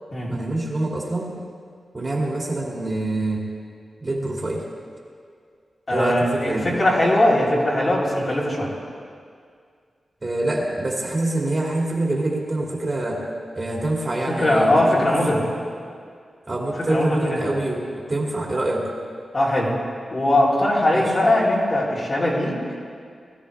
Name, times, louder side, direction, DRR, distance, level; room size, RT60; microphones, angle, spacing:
voice 1, 0.3-1.3 1.9-3.5 4.0-4.6 5.9-6.7 10.2-13.2 13.5-15.1 15.3-15.4 16.5-18.9 20.9-21.1, right 2 dB, 30° right, -2 dB, 2.4 m, -25 dB
voice 2, 5.9-8.7 14.3-15.4 16.9-17.5 19.3-19.7 20.1-22.6, left 1 dB, 40° left, -6 dB, 3.5 m, -20 dB
20.5 x 13.0 x 3.4 m, 2.1 s
wide cardioid pair, 105°, 0 cm